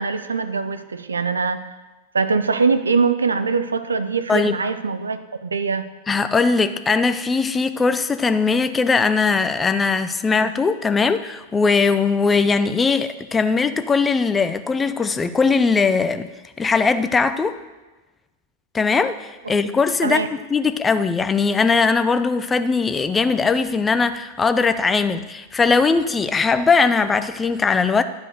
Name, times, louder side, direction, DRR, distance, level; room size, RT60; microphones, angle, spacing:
voice 1, 0.0-1.6 2.1-5.9 20.0-20.3, right 4 dB, 75° right, 11 dB, 0.6 m, -22 dB
voice 2, 6.1-16.3 16.6-17.6 18.7-28.0, left 4 dB, 15° left, 11 dB, 0.5 m, -20 dB
11.0 x 5.1 x 6.6 m, 1.2 s
figure-of-eight pair, 90°, 0 cm